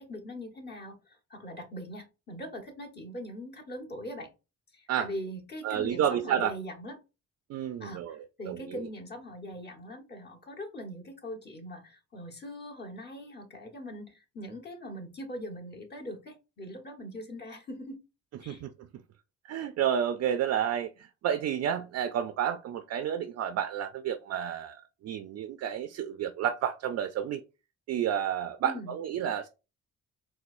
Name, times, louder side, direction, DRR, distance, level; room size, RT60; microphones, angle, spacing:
voice 1, 0.0-4.3 4.7-7.0 7.8-18.0 18.4-18.6 28.6-29.0, equal, 35° left, 1.1 m, -41 dB
voice 2, 5.6-6.5 7.5-8.2 8.5-8.8 18.5-18.7 19.5-27.4 27.9-29.5, right 9 dB, 60° right, 0.4 m, -30 dB
4.2 x 2.0 x 2.5 m
cardioid pair, 90°, 30 cm